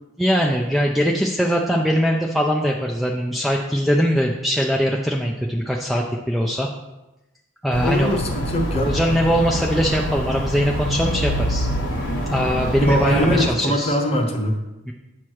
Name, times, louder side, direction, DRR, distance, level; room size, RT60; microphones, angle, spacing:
voice 1, 0.2-6.7 7.6-8.2 8.7-11.7 12.3-14.0 14.9-15.0, equal, ahead, -1 dB, 0.4 m, -21 dB
sound 1, 7.7-13.5, equal, 60° left, 1.2 m, -25 dB
voice 2, 7.8-8.9 12.9-14.6, equal, 30° left, 3 dB, 0.9 m, -22 dB
8.3 x 3.0 x 6.4 m, 1.0 s
head